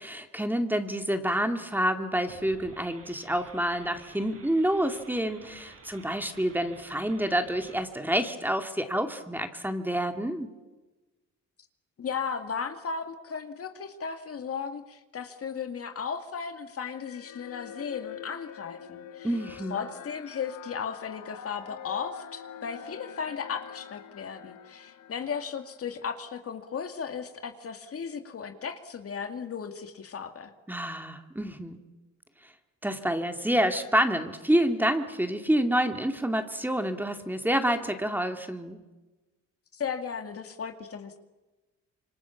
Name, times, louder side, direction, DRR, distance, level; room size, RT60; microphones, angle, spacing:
voice 1, 0.0-10.5 19.2-19.8 30.7-31.9 32.4-32.5 32.8-38.8, right 1 dB, 5° right, 6 dB, 2.3 m, -28 dB
sound 1, 2.3-7.9, right 4 dB, 50° right, 6.1 m, -52 dB
voice 2, 12.0-19.3 19.7-30.5 39.7-41.2, left 6 dB, 50° left, 7 dB, 2.3 m, -36 dB
sound 2, 16.8-26.3, left 9 dB, 80° left, 1.7 m, -45 dB
27.0 x 24.5 x 7.2 m, 1.2 s
cardioid pair, 90°, 30 cm